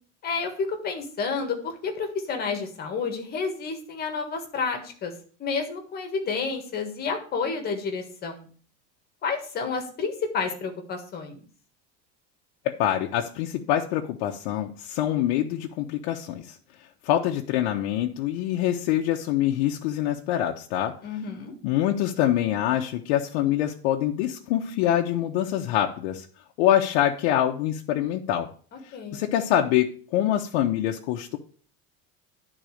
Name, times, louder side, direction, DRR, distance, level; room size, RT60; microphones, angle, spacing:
voice 1, 0.2-5.1 5.4-8.5 9.2-11.4 21.0-21.5 28.9-29.2, left 5 dB, 30° left, 5 dB, 1.6 m, -30 dB
voice 2, 12.8-16.6 17.0-21.0 21.6-26.3 26.6-28.5 28.8-31.4, left 11 dB, 85° left, 1 dB, 0.9 m, -25 dB
10.5 x 4.0 x 6.4 m, 0.43 s
cardioid pair, 170°, 32 cm